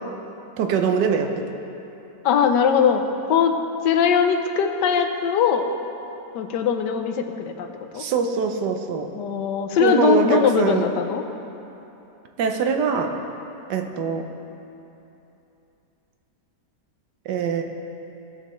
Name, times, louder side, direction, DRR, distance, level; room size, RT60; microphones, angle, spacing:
voice 1, 0.6-1.3 8.0-9.1 9.8-10.9 12.4-13.1 13.7-14.2 17.3-17.6, right 6 dB, 80° right, 5 dB, 1.4 m, -23 dB
voice 2, 2.2-3.0 3.3-3.6 3.8-5.7 6.3-7.7 7.9-8.0 9.1-11.2, left 7 dB, 85° left, 6 dB, 1.3 m, -20 dB
17.5 x 6.6 x 3.1 m, 2.9 s
omnidirectional pair, 1.8 m